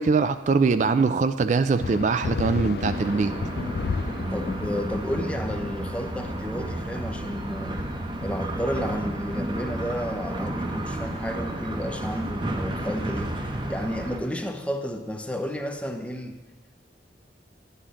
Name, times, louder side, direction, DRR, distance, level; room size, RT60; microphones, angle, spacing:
voice 1, 0.0-3.3, right 4 dB, 40° right, 11 dB, 0.3 m, -22 dB
sound 1, 1.8-11.8, left 4 dB, 60° left, 0.4 m, -35 dB
sound 2, 2.9-14.2, right 1 dB, 25° right, 0.8 m, -32 dB
voice 2, 4.3-7.8 8.2-16.4, equal, 5° left, 5 dB, 0.6 m, -32 dB
11.5 x 9.5 x 3.7 m, 1.2 s
head